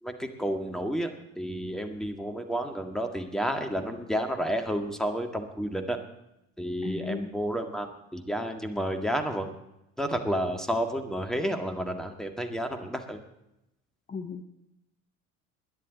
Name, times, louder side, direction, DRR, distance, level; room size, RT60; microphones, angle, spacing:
voice 1, 0.0-6.0 6.6-9.5 10.0-13.2, equal, ahead, 5 dB, 1.8 m, -31 dB
voice 2, 6.8-7.3 14.1-14.4, left 5 dB, 20° left, 8 dB, 0.9 m, -34 dB
21.0 x 10.5 x 4.0 m, 0.87 s
figure-of-eight pair, 65°, 40 cm